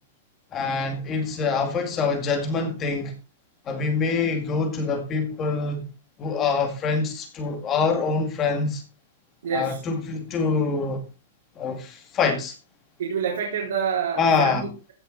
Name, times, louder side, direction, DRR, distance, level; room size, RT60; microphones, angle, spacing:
voice 1, 0.5-3.1 3.7-5.9 6.2-8.8 9.5-11.0 11.6-12.5 14.2-14.7, left 4 dB, 15° left, 2.3 m, -25 dB
voice 2, 9.4-9.8 13.0-14.9, right 7 dB, 70° right, 4.0 m, -27 dB
15.5 x 6.4 x 3.9 m
supercardioid pair, 180°, 0 cm